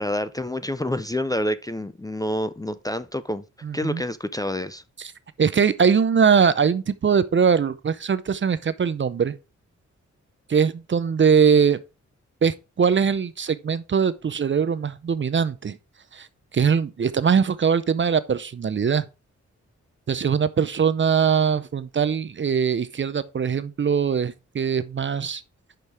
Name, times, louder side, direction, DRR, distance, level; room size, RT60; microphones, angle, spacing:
voice 1, 0.0-3.4 3.7-4.8, left 1 dB, 10° left, 0.5 m, -28 dB
voice 2, 3.6-4.0 5.0-5.1 5.4-9.3 10.5-11.8 12.4-15.8 16.1-16.3 16.5-19.0 20.1-25.4, right 6 dB, 40° right, 0.5 m, -21 dB
5.6 x 5.2 x 4.7 m
cardioid pair, 75°, 30 cm